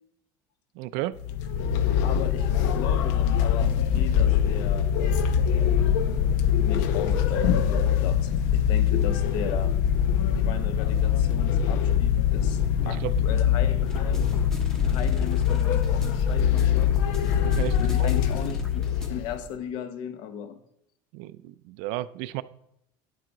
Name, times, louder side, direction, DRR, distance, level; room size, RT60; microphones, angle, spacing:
voice 1, 0.8-1.2 12.8-13.1 17.4-18.1 21.1-22.4, right 16 dB, 65° right, 16 dB, 0.4 m, -33 dB
sound 1, 1.2-19.4, left 8 dB, 80° left, 0.8 m, -23 dB
voice 2, 2.0-5.3 6.6-9.7 10.4-12.6 12.9-14.3 14.9-16.9 17.8-20.6, left 8 dB, 55° left, 10 dB, 0.9 m, -37 dB
sound 2, 13.9-19.1, equal, 5° left, 0.9 m, -39 dB
10.5 x 7.6 x 3.9 m, 0.76 s
cardioid pair, 175°, 9 cm